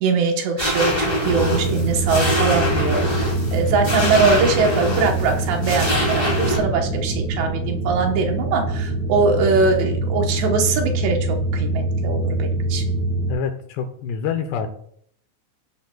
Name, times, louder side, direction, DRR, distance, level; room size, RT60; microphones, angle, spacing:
voice 1, 0.0-12.8, right 4 dB, 70° right, 3 dB, 3.0 m, -22 dB
sound 1, 0.6-6.6, left 1 dB, 10° left, 2.4 m, -24 dB
sound 2, 1.2-13.3, right 2 dB, 15° right, 4.9 m, -24 dB
voice 2, 13.3-14.7, left 7 dB, 75° left, 7 dB, 2.7 m, -26 dB
14.5 x 10.5 x 2.3 m, 0.66 s
omnidirectional pair, 5.5 m